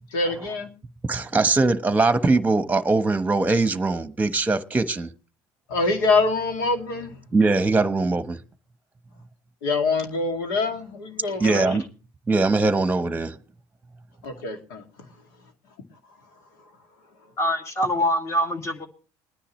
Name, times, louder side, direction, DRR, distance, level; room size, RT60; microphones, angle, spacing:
voice 1, 0.1-0.7 5.7-7.1 9.6-11.8 14.2-14.8, left 3 dB, 85° left, 2.3 m, -24 dB
voice 2, 1.0-5.1 7.3-8.4 11.4-11.9 12.3-13.4, right 3 dB, 15° right, 1.1 m, -21 dB
voice 3, 17.4-18.9, equal, 30° left, 2.2 m, -24 dB
21.5 x 10.0 x 3.1 m
supercardioid pair, 85°, 10 cm